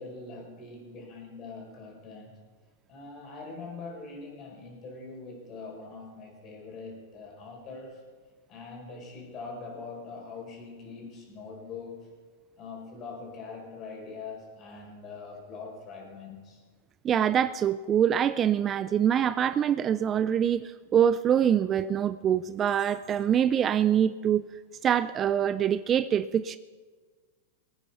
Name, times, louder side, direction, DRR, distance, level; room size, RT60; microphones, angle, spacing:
voice 1, 0.0-2.4 2.9-8.0 8.5-12.1 12.6-16.6, left 4 dB, 35° left, 0 dB, 4.8 m, -43 dB
voice 2, 17.0-24.5 24.8-26.6, right 9 dB, 25° right, 15 dB, 0.3 m, -24 dB
21.0 x 9.1 x 5.7 m, 1.5 s
hypercardioid pair, 135°, 0 cm